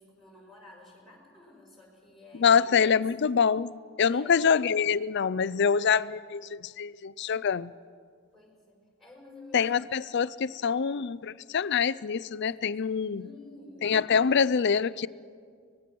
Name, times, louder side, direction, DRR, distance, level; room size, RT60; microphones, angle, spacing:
voice 1, 0.0-2.6 2.9-3.3 4.1-4.4 8.3-9.8 10.7-10.8 12.7-14.3, left 2 dB, ahead, -2 dB, 5.4 m, -52 dB
voice 2, 2.4-3.7 4.0-7.7 9.5-13.2 13.8-15.1, left 6 dB, 55° left, 18 dB, 0.5 m, -25 dB
24.5 x 19.5 x 6.1 m, 2.1 s
head